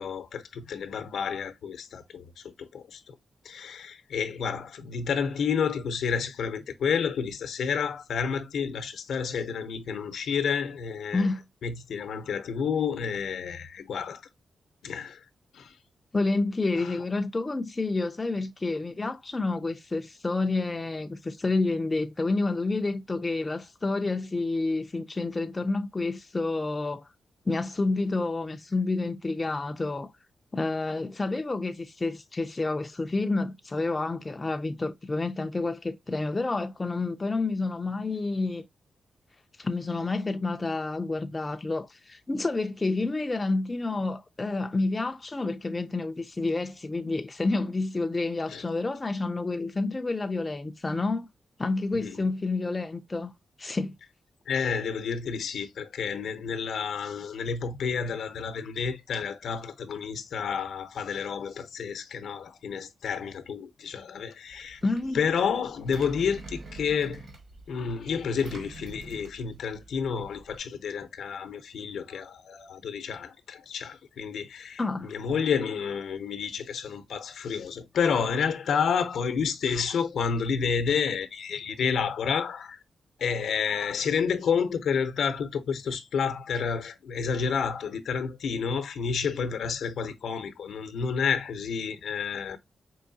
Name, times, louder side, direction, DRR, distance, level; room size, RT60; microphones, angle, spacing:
voice 1, 0.0-3.2 3.4-11.3 11.6-14.2 14.8-15.2 15.5-15.8 16.8-17.0 48.5-48.6 51.9-52.2 54.5-64.8 65.1-67.2 67.7-82.8 83.2-92.6, left 6 dB, 80° left, 0.7 m, -30 dB
voice 2, 16.1-27.1 27.5-30.1 30.5-38.6 39.6-51.3 51.6-53.3 53.6-54.0 64.8-65.2 74.8-75.1, left 3 dB, 20° left, 0.3 m, -29 dB
Engine, 64.5-70.6, right 2 dB, 55° right, 1.1 m, -46 dB
4.5 x 3.1 x 2.6 m
wide cardioid pair, 155°, 0 cm